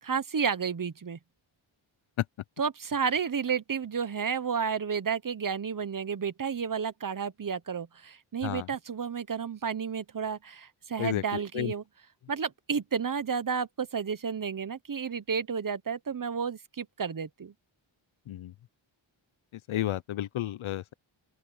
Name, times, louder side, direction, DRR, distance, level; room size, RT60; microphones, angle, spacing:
voice 1, 0.0-1.2 2.6-11.8 12.3-17.5, right 6 dB, 45° right, 1.1 m, -31 dB
voice 2, 11.0-11.7 18.3-18.5 19.7-20.9, left 13 dB, 80° left, 0.7 m, -32 dB
open air
cardioid pair, 70°, 48 cm